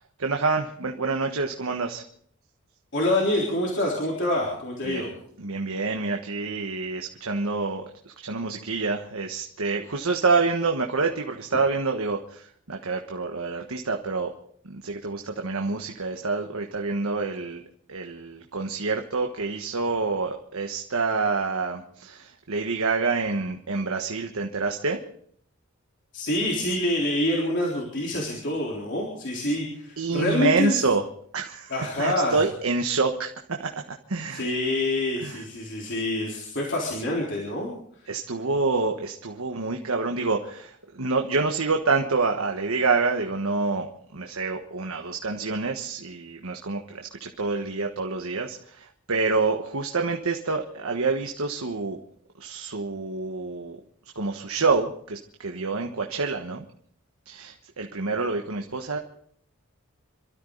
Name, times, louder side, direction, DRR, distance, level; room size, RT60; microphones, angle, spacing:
voice 1, 0.2-2.0 4.9-5.0 5.4-14.3 14.6-17.6 17.9-25.0 30.0-31.0 31.3-31.7 32.0-34.5 35.2-35.4 38.1-52.0 52.4-53.8 54.1-56.6 57.2-59.0, right 4 dB, 85° right, 3 dB, 1.3 m, -27 dB
voice 2, 2.9-5.1 26.1-30.8 31.7-32.4 34.3-37.7, left 1 dB, 55° left, -3 dB, 4.0 m, -26 dB
27.5 x 13.0 x 4.0 m, 0.62 s
head